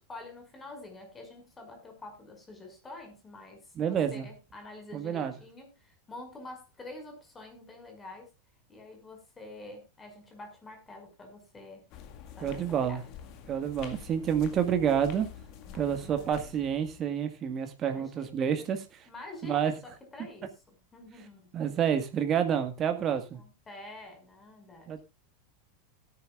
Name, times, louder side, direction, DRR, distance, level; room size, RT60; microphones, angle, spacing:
voice 1, 0.1-8.3 8.7-11.8 12.4-13.3 15.6-16.5 17.9-18.7 19.1-21.5 23.3-25.0, left 2 dB, 20° left, 4 dB, 5.7 m, -47 dB
voice 2, 3.8-4.3 4.9-5.3 12.4-13.0 13.5-15.3 15.7-18.8 19.4-19.7 21.5-23.4 24.9-25.0, right 8 dB, 35° right, 8 dB, 1.7 m, -28 dB
sound 1, 11.9-17.0, left 9 dB, 45° left, 1.9 m, -47 dB
17.5 x 10.5 x 2.5 m, 0.24 s
figure-of-eight pair, 85°, 0 cm